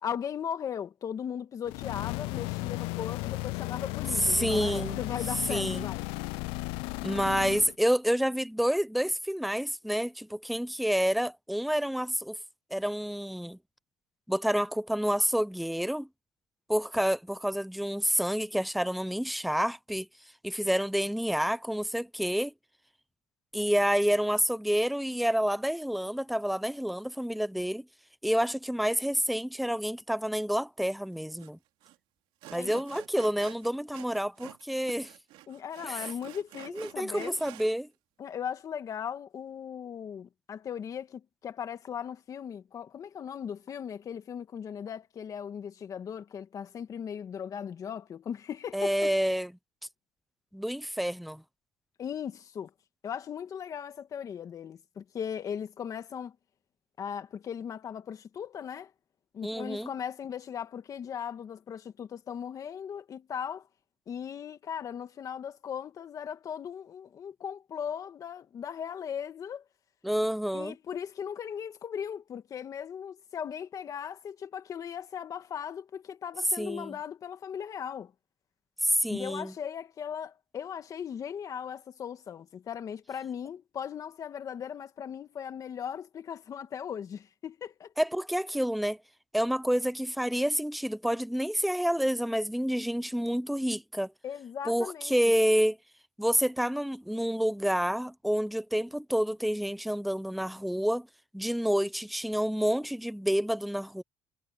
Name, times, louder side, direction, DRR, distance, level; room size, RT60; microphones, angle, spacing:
voice 1, 0.0-6.0 32.6-32.8 35.5-37.4 38.2-49.1 52.0-52.7 53.0-56.4 57.0-58.9 59.3-63.6 64.1-69.6 70.5-78.1 79.1-87.9 94.2-95.1, left 8 dB, 40° left, 2.1 m, -38 dB
sound 1, 1.6-7.7, left 25 dB, 85° left, 0.4 m, -34 dB
voice 2, 4.2-5.0 5.5-5.9 7.0-12.4 12.7-13.6 14.3-16.1 16.7-20.1 20.4-22.5 23.5-27.8 28.2-31.6 32.5-35.1 35.8-36.0 36.7-37.9 48.7-49.5 50.5-51.4 59.4-59.9 70.0-70.7 76.6-77.0 78.8-79.5 88.0-89.0 89.3-94.1 94.7-95.8 96.2-101.1 101.3-104.0, equal, ahead, 0.7 m, -28 dB
Sawing, 31.4-31.5 31.8-32.0 32.4-34.6 34.9-37.7, right 16 dB, 75° right, 3.3 m, -48 dB
cardioid pair, 125°, 9 cm